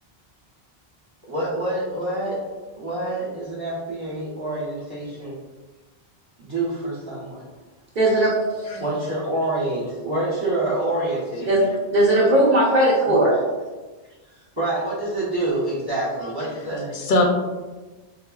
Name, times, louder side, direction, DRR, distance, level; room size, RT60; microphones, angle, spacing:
voice 1, 1.3-2.4 2.8-5.4 6.4-7.4 8.8-11.5 13.1-13.2 14.6-16.9, right 2 dB, 25° right, -8 dB, 0.8 m, -27 dB
voice 2, 8.0-8.8 11.5-11.6 11.9-13.3, right 1 dB, 55° right, -9 dB, 0.8 m, -18 dB
voice 3, 11.4-11.8 16.2-17.2, left 2 dB, 60° left, 0 dB, 0.6 m, -26 dB
4.2 x 2.0 x 2.3 m, 1.2 s
omnidirectional pair, 1.1 m